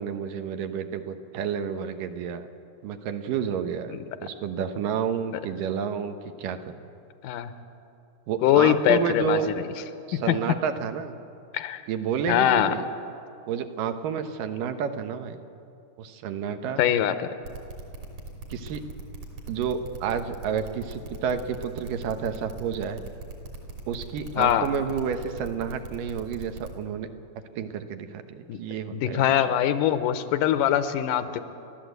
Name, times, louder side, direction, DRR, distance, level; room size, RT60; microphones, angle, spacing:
voice 1, 0.0-2.5 2.8-6.8 8.3-9.5 10.1-11.2 11.9-12.9 13.5-15.4 16.0-16.8 18.5-18.8 19.5-23.0 23.9-27.1 27.6-29.5, right 7 dB, 80° right, 8 dB, 2.7 m, -30 dB
voice 2, 8.4-9.6 10.1-10.4 11.5-11.8 12.3-12.7 16.8-17.3 24.4-24.7 28.5-28.6 28.9-31.4, left 11 dB, 80° left, 10 dB, 2.4 m, -22 dB
sound 1, 17.4-26.8, right 3 dB, 60° right, 4.3 m, -39 dB
30.0 x 12.5 x 8.0 m, 2.6 s
omnidirectional pair, 3.8 m